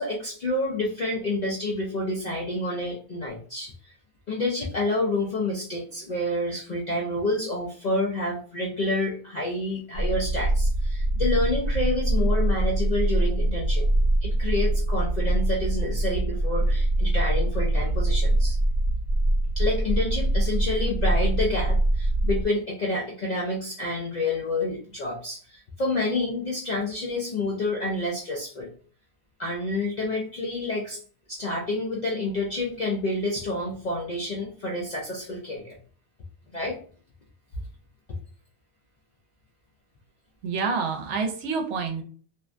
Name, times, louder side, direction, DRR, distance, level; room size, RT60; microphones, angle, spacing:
voice 1, 0.0-3.9 4.3-13.8 14.2-18.6 19.6-28.7 29.4-31.0 31.3-35.8 36.5-36.8, left 2 dB, 55° left, -3 dB, 0.5 m, -28 dB
sound 1, 9.9-22.4, right 1 dB, 85° left, 1.0 m, -23 dB
voice 2, 40.4-42.0, right 5 dB, 75° right, 4 dB, 0.9 m, -27 dB
2.5 x 2.2 x 2.4 m, 0.43 s
omnidirectional pair, 1.2 m